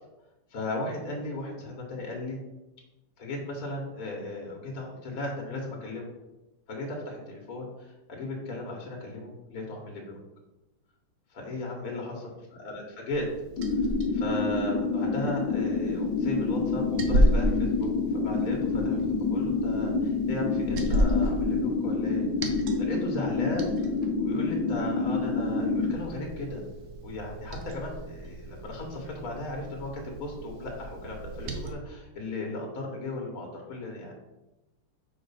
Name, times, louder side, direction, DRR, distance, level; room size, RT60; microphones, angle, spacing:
voice 1, 0.5-2.4 3.2-6.1 6.7-10.2 11.3-13.2 13.7-13.8 14.1-22.3 22.8-23.7 24.2-26.6 27.0-34.1, left 2 dB, 45° left, -1 dB, 1.5 m, -36 dB
Liquid, 13.1-31.7, equal, 80° right, 0.7 m, -33 dB
sound 1, 13.6-25.9, left 4 dB, 65° left, 1.3 m, -28 dB
4.9 x 4.5 x 5.6 m, 0.98 s
omnidirectional pair, 2.4 m